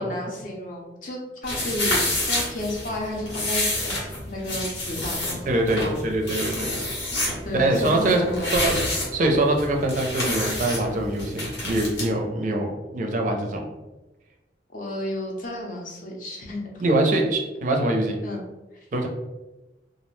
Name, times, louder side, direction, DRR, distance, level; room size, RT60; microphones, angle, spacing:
voice 1, 0.0-5.5 5.8-6.1 7.4-8.9 14.7-16.8 18.2-18.4, left 1 dB, 50° left, -1 dB, 0.6 m, -32 dB
sound 1, 1.4-12.1, left 1 dB, 90° left, 1.0 m, -28 dB
voice 2, 5.5-6.8 7.5-8.7 9.1-13.6 16.8-18.2 18.9-19.1, right 2 dB, 45° right, 1 dB, 0.4 m, -23 dB
2.4 x 2.0 x 3.0 m, 1.1 s
head